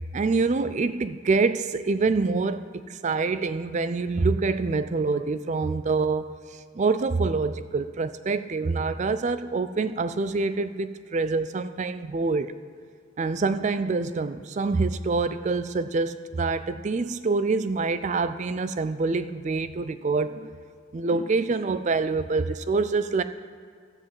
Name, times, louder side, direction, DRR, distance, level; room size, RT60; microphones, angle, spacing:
voice 1, 0.1-12.5 13.2-20.5 20.9-23.2, right 4 dB, 35° right, 0.3 m, -26 dB
14.5 x 4.9 x 7.6 m
head